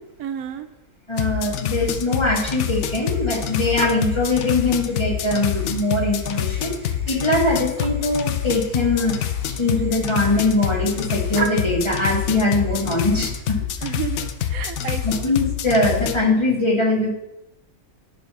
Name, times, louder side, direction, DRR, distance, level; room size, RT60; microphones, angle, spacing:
voice 1, 0.2-0.7 13.8-15.3 15.7-15.8, right 9 dB, 85° right, 10 dB, 1.1 m, -31 dB
sound 1, 1.1-16.2, left 10 dB, 65° left, 0.9 m, -26 dB
voice 2, 1.1-9.2 9.6-13.7 15.0-17.1, left 2 dB, 20° left, -1 dB, 1.5 m, -22 dB
sound 2, 2.1-13.4, right 2 dB, 30° right, 0.4 m, -37 dB
10.0 x 4.1 x 5.6 m, 0.86 s
omnidirectional pair, 1.5 m